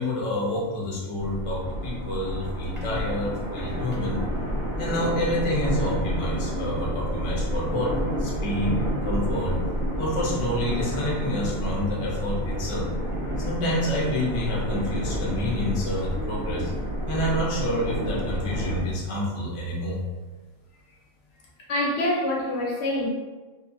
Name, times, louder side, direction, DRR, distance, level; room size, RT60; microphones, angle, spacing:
voice 1, 0.0-4.2 4.8-7.9 8.2-9.5 10.0-12.9 13.4-16.7 17.1-20.0, left 1 dB, 50° left, -5 dB, 0.4 m, -28 dB
sound 1, 1.2-18.8, equal, 10° right, 0.6 m, -29 dB
voice 2, 21.7-23.1, left 1 dB, 65° left, -3 dB, 0.8 m, -25 dB
2.6 x 2.2 x 2.6 m, 1.3 s
omnidirectional pair, 1.4 m